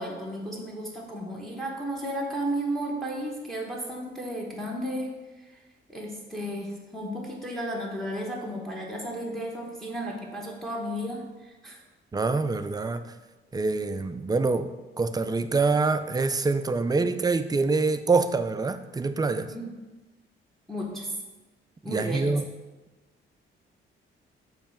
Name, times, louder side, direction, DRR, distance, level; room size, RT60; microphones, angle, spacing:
voice 1, 0.0-5.2 5.9-11.8 19.5-19.7 20.7-21.1 21.8-22.3, right 1 dB, ahead, -1 dB, 1.0 m, -33 dB
voice 2, 12.1-13.1 13.5-14.7 15.0-19.5 21.9-22.4, right 3 dB, 20° right, 10 dB, 0.4 m, -25 dB
6.8 x 3.2 x 5.7 m, 1.2 s
cardioid pair, 105°, 21 cm